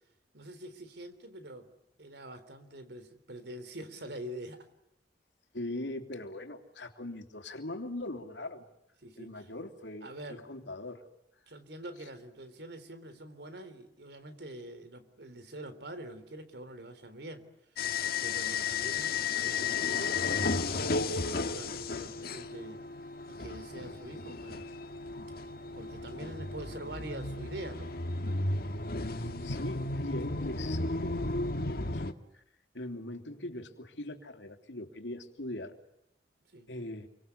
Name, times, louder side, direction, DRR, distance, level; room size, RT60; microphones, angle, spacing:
voice 1, 0.3-1.7 2.0-4.7 9.0-9.5 10.0-10.5 11.5-17.5 18.2-21.0 21.3-22.8 23.3-24.7 25.7-27.9 36.5-36.7, right 1 dB, 65° right, 11 dB, 3.7 m, -45 dB
voice 2, 5.5-8.6 9.2-11.0 29.1-31.4 31.7-32.1 32.3-32.4 32.7-35.7 36.7-37.1, left 1 dB, 85° left, 6 dB, 3.3 m, -41 dB
sound 1, 17.8-32.1, left 4 dB, 55° left, 1.7 m, -34 dB
29.0 x 25.0 x 8.3 m, 0.80 s
head